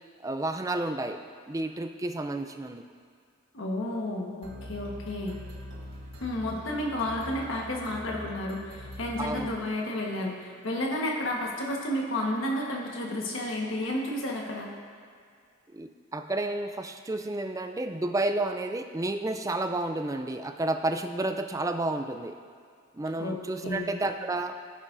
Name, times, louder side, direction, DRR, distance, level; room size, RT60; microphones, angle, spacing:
voice 1, 0.2-2.8 9.2-9.5 15.7-22.4 22.9-24.5, right 2 dB, 15° right, 6 dB, 0.3 m, -31 dB
voice 2, 3.5-5.4 6.2-14.7 23.2-23.9, left 1 dB, 75° left, -1 dB, 1.3 m, -31 dB
sound 1, 4.4-10.1, equal, 75° right, 1.5 m, -43 dB
15.5 x 6.2 x 2.6 m, 2.2 s
head